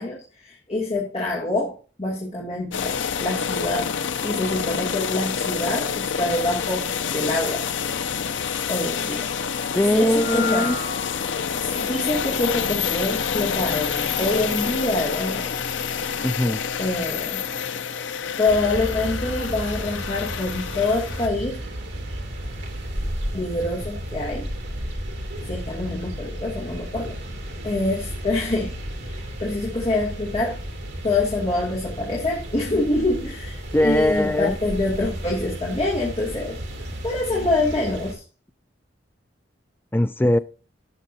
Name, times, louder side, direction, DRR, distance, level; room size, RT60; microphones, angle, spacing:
voice 1, 0.0-2.9 3.2-3.9 4.2-7.6 8.7-9.3 9.9-10.8 11.6-15.5 16.8-17.4 18.4-21.6 23.3-24.5 25.5-27.2 27.6-28.7 29.0-30.6 31.0-36.6 37.0-38.2, left 2 dB, 35° left, 2.4 m, -25 dB
sound 1, 2.7-21.3, left 7 dB, 75° left, 0.6 m, -28 dB
voice 2, 9.7-10.8 16.2-16.6 33.7-34.6 39.9-40.4, left 1 dB, 10° left, 0.4 m, -20 dB
sound 2, 9.9-16.4, left 4 dB, 55° left, 2.9 m, -37 dB
sound 3, 18.5-38.1, equal, 70° right, 2.6 m, -33 dB
16.5 x 6.5 x 2.7 m
head